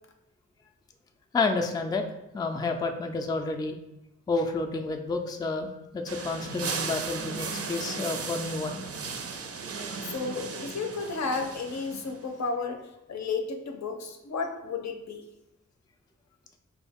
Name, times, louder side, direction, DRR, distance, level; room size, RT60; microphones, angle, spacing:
voice 1, 1.3-2.0 2.3-3.8 4.3-8.9 9.8-10.0, left 3 dB, 15° left, 4 dB, 0.3 m, -30 dB
sound 1, 6.1-12.3, right 5 dB, 55° right, 0.4 m, -36 dB
voice 2, 10.0-15.2, left 4 dB, 65° left, 5 dB, 0.6 m, -33 dB
4.5 x 2.3 x 3.4 m, 0.91 s
wide cardioid pair, 80°, 29 cm